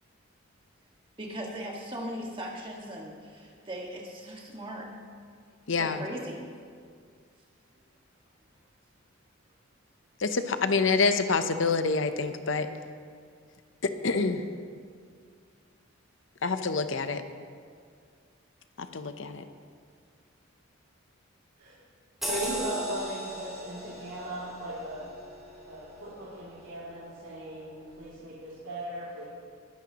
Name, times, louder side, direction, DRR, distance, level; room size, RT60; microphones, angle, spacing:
voice 1, 1.2-4.9 5.8-6.4, equal, 25° right, -1 dB, 1.7 m, -38 dB
voice 2, 5.7-6.0 10.2-12.7 13.8-14.5 16.4-17.2 18.8-19.4, left 4 dB, 65° left, 9 dB, 0.7 m, -27 dB
sound 1, 22.2-27.2 27.6-27.8, right 1 dB, ahead, 3.2 m, -39 dB
voice 3, 22.3-25.1 25.6-29.3, right 1 dB, 90° right, -8 dB, 2.7 m, -38 dB
21.0 x 12.0 x 3.0 m, 2.1 s
head